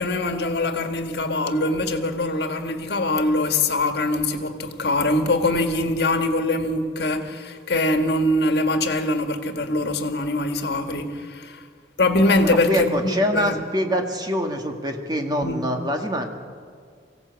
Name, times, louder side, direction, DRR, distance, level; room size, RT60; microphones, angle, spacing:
voice 1, 0.0-11.6 12.0-13.6 15.4-15.6, left 2 dB, 65° left, 1.8 m, -23 dB
voice 2, 12.4-16.2, equal, 25° right, 2.0 m, -25 dB
24.0 x 16.5 x 8.1 m
head